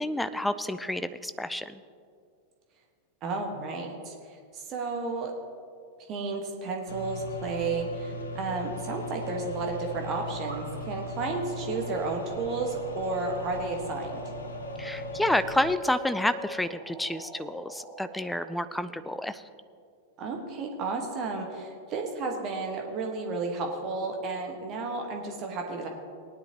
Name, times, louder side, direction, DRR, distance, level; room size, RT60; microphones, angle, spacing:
voice 1, 0.0-1.8 14.8-19.4, left 1 dB, 5° left, 12 dB, 0.5 m, -29 dB
voice 2, 3.2-5.3 6.1-14.2 20.2-25.9, right 3 dB, 35° right, 2 dB, 1.4 m, -32 dB
sound 1, 6.9-15.8, left 1 dB, 70° left, 1.0 m, -39 dB
sound 2, 10.0-10.7, right 2 dB, 85° right, 3.1 m, -44 dB
sound 3, 11.5-18.6, left 1 dB, 15° right, 3.0 m, -43 dB
18.5 x 10.0 x 2.9 m, 2.3 s
figure-of-eight pair, 90°, 0 cm